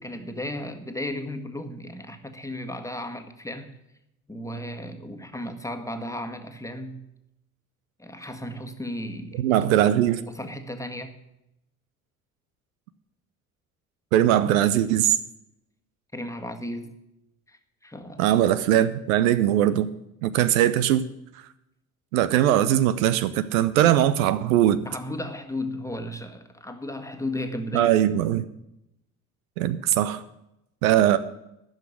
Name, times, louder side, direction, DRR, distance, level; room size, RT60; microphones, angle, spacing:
voice 1, 0.0-3.8 4.3-7.1 8.0-9.4 10.3-11.1 16.1-17.0 17.5-18.3 24.8-27.9, left 1 dB, 5° left, 5 dB, 1.6 m, -34 dB
voice 2, 9.4-10.2 14.1-15.1 18.2-19.9 20.2-21.1 22.1-24.9 27.7-28.4 29.6-30.2 30.8-31.2, right 12 dB, 70° right, 14 dB, 0.7 m, -20 dB
12.0 x 6.5 x 9.7 m, 0.85 s
figure-of-eight pair, 55°, 43 cm